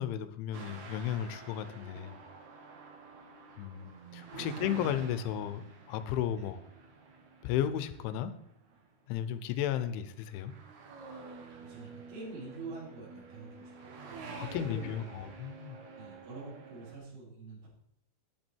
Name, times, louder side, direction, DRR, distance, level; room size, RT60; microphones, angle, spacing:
voice 1, 0.0-2.2 3.6-6.6 7.4-8.3 9.1-10.5 14.4-15.8, left 10 dB, 85° left, 12 dB, 3.2 m, -34 dB
sound 1, 0.5-8.8 9.5-9.8 10.2-17.0, right 4 dB, 60° right, 2.0 m, -48 dB
voice 2, 11.6-15.3 15.9-17.7, right 3 dB, 85° right, -9 dB, 5.6 m, -46 dB
10.5 x 10.5 x 4.5 m, 0.74 s
omnidirectional pair, 5.3 m